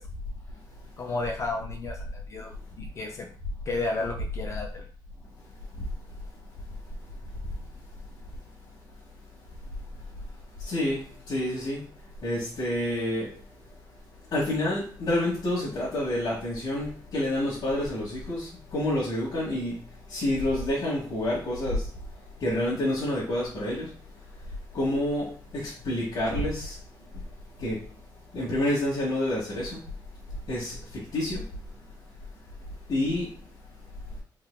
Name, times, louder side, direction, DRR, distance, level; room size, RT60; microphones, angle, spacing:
voice 1, 1.0-3.3 3.7-4.9, left 3 dB, 35° left, 0.4 m, -33 dB
voice 2, 10.6-11.8 12.2-13.3 14.3-19.8 20.1-21.9 22.4-23.9 24.7-26.8 27.6-27.8 28.3-29.8 30.5-31.4 32.9-33.3, left 1 dB, 60° left, 1.3 m, -28 dB
3.8 x 3.3 x 2.3 m
wide cardioid pair, 175°, 8 cm